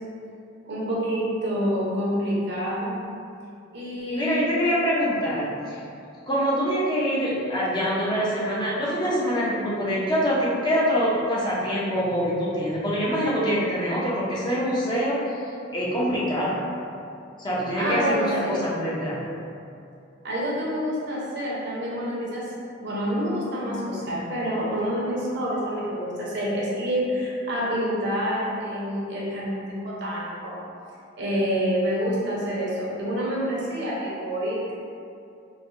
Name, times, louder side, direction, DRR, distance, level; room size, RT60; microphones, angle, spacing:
voice 1, 0.7-3.1 3.7-4.5 17.8-18.6 20.2-22.5 22.8-30.6 31.2-34.7, equal, 60° right, -6 dB, 0.7 m, -27 dB
voice 2, 4.1-5.8 6.3-15.2 15.7-16.6 17.4-19.3, equal, 25° left, -8 dB, 0.6 m, -25 dB
4.0 x 2.1 x 2.5 m, 2.5 s
head